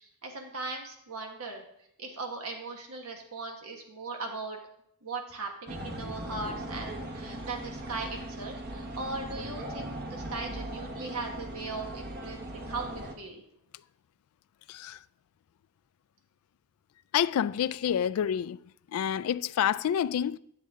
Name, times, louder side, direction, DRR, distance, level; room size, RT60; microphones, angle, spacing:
voice 1, 0.0-1.6 2.0-4.6 5.0-13.4, right 3 dB, 80° right, 1.4 m, -39 dB
sound 1, 5.7-13.1, right 1 dB, 45° right, 1.1 m, -39 dB
voice 2, 14.7-15.0 17.1-18.6 18.9-20.4, left 9 dB, 75° left, 0.3 m, -28 dB
10.5 x 7.6 x 3.6 m
head